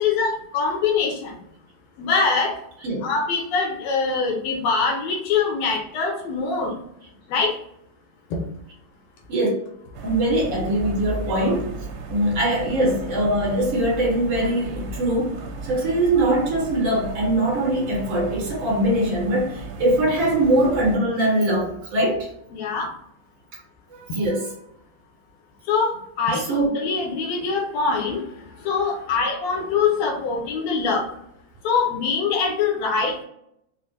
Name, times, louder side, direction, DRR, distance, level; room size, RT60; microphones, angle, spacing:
voice 1, 0.0-1.3 2.0-2.5 3.0-6.7 7.3-7.6 22.5-22.9 25.7-28.2 28.6-31.1 31.6-33.2, left 5 dB, 75° left, 1 dB, 1.6 m, -23 dB
sound 1, 9.9-21.0, right 2 dB, 85° right, 2.0 m, -35 dB
voice 2, 10.0-11.7 12.1-15.3 15.6-22.3 23.9-24.5 26.5-26.7, right 1 dB, 60° right, -4 dB, 2.1 m, -22 dB
5.0 x 2.1 x 2.8 m, 0.75 s
omnidirectional pair, 3.5 m